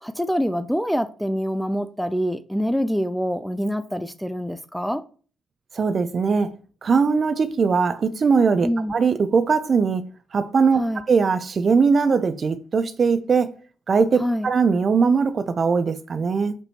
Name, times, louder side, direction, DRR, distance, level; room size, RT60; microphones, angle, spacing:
voice 1, 0.0-5.0 8.6-8.9 10.8-11.0 14.2-14.5, equal, ahead, 0.4 m, -25 dB
voice 2, 5.7-6.5 6.8-10.0 10.3-10.8 11.1-13.5 13.9-16.6, right 5 dB, 45° right, 0.6 m, -20 dB
6.1 x 5.2 x 3.0 m
cardioid pair, 90°, 0 cm